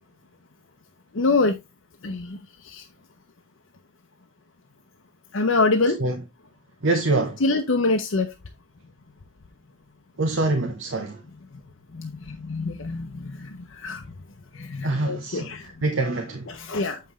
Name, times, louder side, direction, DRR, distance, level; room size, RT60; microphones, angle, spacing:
voice 1, 1.1-1.6 2.0-2.8 5.3-6.0 7.4-8.3 11.5-11.6 11.9-14.1 14.5-15.8 16.5-17.0, left 3 dB, 75° left, 0.7 m, -25 dB
voice 2, 6.8-7.4 10.2-11.2 14.8-15.5 15.8-16.5, right 2 dB, 70° right, 0.9 m, -24 dB
7.6 x 5.7 x 3.1 m
head